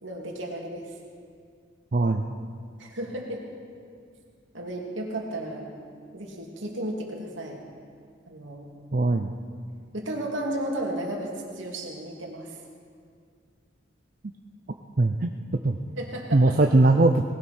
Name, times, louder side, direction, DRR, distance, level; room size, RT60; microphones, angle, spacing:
voice 1, 0.0-0.9 2.8-3.4 4.5-5.7 6.1-7.6 8.3-8.7 9.9-12.6 16.0-16.6, right 1 dB, 85° right, -1 dB, 2.6 m, -33 dB
voice 2, 1.9-2.3 8.9-9.3 15.0-15.3 15.6-15.8 16.3-17.2, right 2 dB, 45° right, 4 dB, 0.6 m, -20 dB
19.0 x 16.5 x 4.4 m, 2.2 s
head